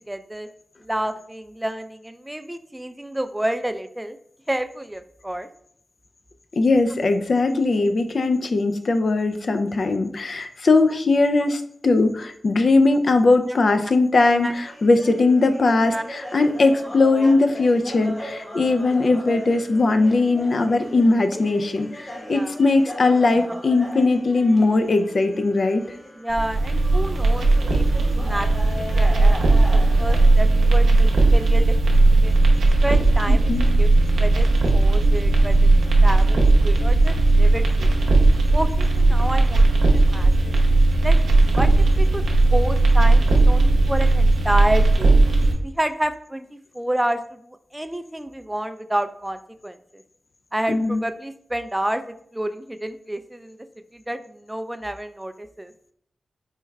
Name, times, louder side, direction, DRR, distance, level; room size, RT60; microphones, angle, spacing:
voice 1, 0.1-0.5 0.8-4.2 4.5-5.5 14.4-14.6 15.9-16.0 17.2-17.3 22.2-22.6 26.2-32.0 32.2-32.3 32.8-33.5 33.8-33.9 34.2-35.7 36.0-37.9 38.5-39.7 39.9-40.5 41.0-41.2 41.6-42.2 42.5-45.2 45.6-50.0 50.5-52.0 52.3-53.6 53.9-55.7, right 1 dB, 15° right, 11 dB, 0.3 m, -29 dB
voice 2, 6.5-25.8 33.3-33.7 50.7-51.0, left 3 dB, 60° left, 8 dB, 0.4 m, -19 dB
sound 1, 14.5-31.5, left 1 dB, 25° left, 1.1 m, -38 dB
sound 2, 26.3-45.5, right 2 dB, 85° right, 0.6 m, -17 dB
4.5 x 2.3 x 3.1 m, 0.65 s
cardioid pair, 40°, 0 cm